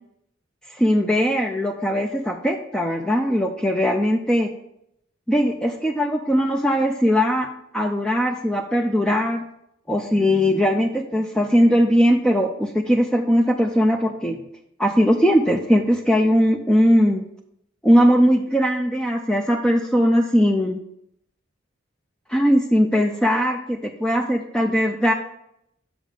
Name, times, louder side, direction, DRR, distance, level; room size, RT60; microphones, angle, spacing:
voice 1, 0.7-4.5 5.3-9.4 9.9-14.5 14.8-17.3 17.8-20.8 22.3-25.1, equal, 5° left, 3 dB, 0.4 m, -19 dB
6.4 x 5.1 x 5.1 m, 0.76 s
head